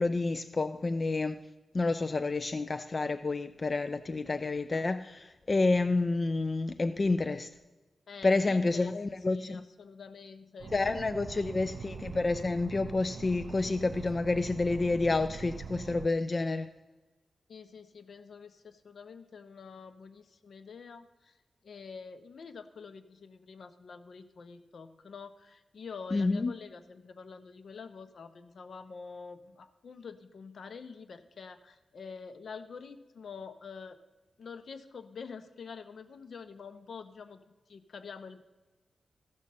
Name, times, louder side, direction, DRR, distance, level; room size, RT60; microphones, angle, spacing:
voice 1, 0.0-1.4 1.7-7.5 8.2-9.6 10.7-16.7 26.1-26.5, left 3 dB, 30° left, 0.3 m, -29 dB
voice 2, 8.1-8.9 9.3-11.0 11.3-11.6 17.5-21.4 21.6-34.0 34.4-37.4 37.7-38.4, left 5 dB, 65° left, 0.7 m, -47 dB
sound 1, 10.6-16.1, right 5 dB, 70° right, 0.3 m, -43 dB
14.0 x 6.4 x 5.5 m
wide cardioid pair, 140°, 0 cm